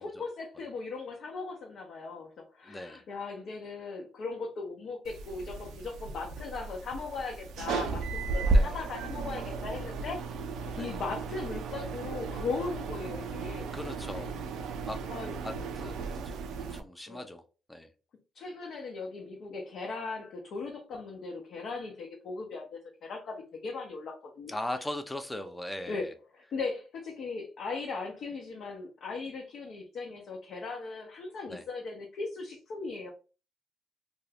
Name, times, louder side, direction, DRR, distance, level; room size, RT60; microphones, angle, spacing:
voice 1, 0.0-2.3 2.5-10.2 10.6-13.7 14.1-14.2 15.1-15.4 17.1-17.2 18.3-24.6 25.9-26.1 26.3-33.1, left 4 dB, 65° left, -1 dB, 0.6 m, -38 dB
voice 2, 2.7-3.0 8.5-8.8 10.7-11.0 13.7-14.3 14.8-15.0 15.4-17.4 17.7-17.9 24.5-26.1 31.5-31.6, left 1 dB, 10° left, 7 dB, 0.5 m, -39 dB
sound 1, 5.0-16.8, right 3 dB, 80° right, 0.4 m, -34 dB
2.6 x 2.3 x 3.3 m, 0.34 s
cardioid pair, 90°, 0 cm